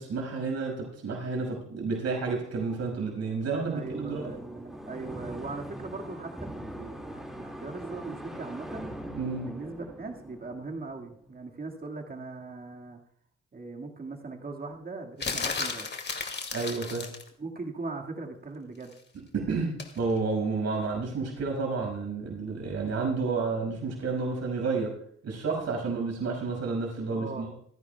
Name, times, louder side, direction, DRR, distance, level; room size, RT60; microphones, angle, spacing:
voice 1, 0.0-4.2 9.2-9.5 16.5-17.1 19.3-24.9 25.2-27.5, right 4 dB, 55° right, 1 dB, 5.8 m, -30 dB
sound 1, 2.5-11.3, equal, ahead, 2.2 m, -42 dB
voice 2, 3.7-8.9 9.4-13.0 13.5-15.9 17.4-18.9 27.1-27.6, right 3 dB, 30° right, 2 dB, 2.0 m, -40 dB
sound 2, 15.2-17.3 19.8-20.0, left 4 dB, 35° left, 2.4 m, -33 dB
28.5 x 10.0 x 2.3 m, 0.66 s
cardioid pair, 90°, 30 cm